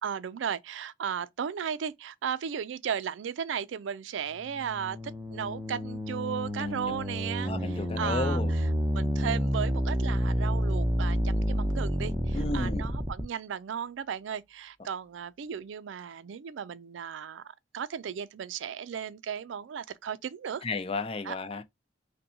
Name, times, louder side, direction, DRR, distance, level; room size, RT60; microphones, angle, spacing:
voice 1, 0.0-8.7 8.9-17.4 17.7-20.6 21.2-21.3, right 7 dB, 90° right, 0.4 m, -35 dB
sound 1, 4.4-13.2, equal, 15° right, 0.7 m, -29 dB
voice 2, 6.6-7.0 7.4-8.5 12.3-12.9 20.6-21.6, left 3 dB, 30° left, 0.4 m, -33 dB
5.2 x 2.2 x 2.7 m
head